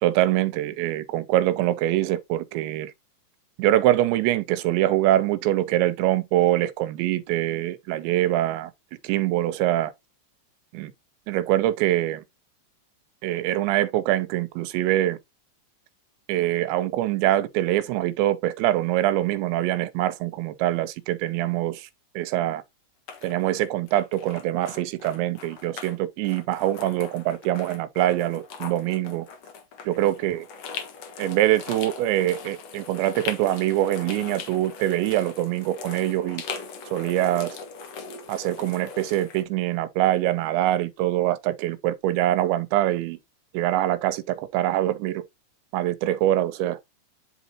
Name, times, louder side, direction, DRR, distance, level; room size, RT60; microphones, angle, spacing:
voice 1, 0.0-2.9 3.6-8.7 9.0-9.9 10.7-10.9 11.3-12.2 13.2-15.2 16.3-21.9 22.2-22.6 23.2-29.3 29.9-30.5 31.2-36.4 36.9-37.6 38.3-43.2 43.5-45.2 45.7-46.8, right 14 dB, 85° right, 2.8 m, -24 dB
sound 1, 23.1-26.0 26.2-39.4, left 5 dB, 85° left, 1.4 m, -40 dB
10.5 x 4.0 x 2.8 m
omnidirectional pair, 5.2 m